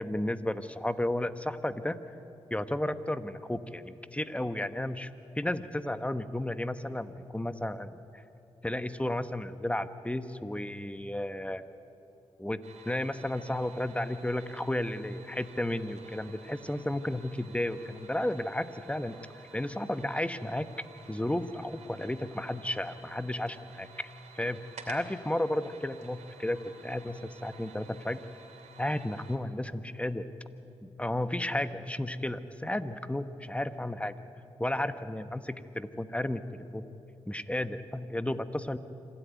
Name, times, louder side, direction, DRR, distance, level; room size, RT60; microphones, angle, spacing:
voice 1, 0.0-2.0 2.5-5.1 5.3-8.2 8.6-11.6 12.4-12.6 12.8-19.1 19.5-20.7 21.1-24.1 24.3-28.2 28.8-30.3 30.8-34.1 34.6-36.8 37.3-38.8, left 1 dB, 10° left, 11 dB, 1.2 m, -33 dB
sound 1, 12.6-29.4, right 4 dB, 75° right, 2.8 m, -53 dB
26.0 x 13.0 x 9.4 m, 2.9 s
supercardioid pair, 40°, 12 cm